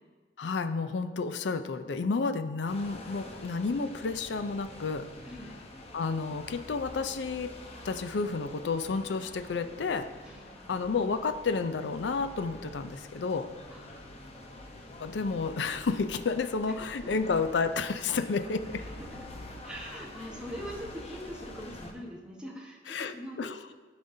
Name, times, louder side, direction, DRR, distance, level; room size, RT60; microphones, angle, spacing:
voice 1, 0.4-5.1 5.9-7.5 7.8-10.1 10.7-13.5 15.0-18.8 22.9-23.5, left 4 dB, 80° left, 9 dB, 0.5 m, -31 dB
sound 1, 2.7-21.9, left 1 dB, 35° left, 0.8 m, -46 dB
voice 2, 5.2-5.6 10.2-10.9 13.7-14.2 17.0-17.2 18.8-19.2 19.6-23.5, equal, 5° right, -2 dB, 1.1 m, -43 dB
14.0 x 5.2 x 2.7 m, 1.4 s
head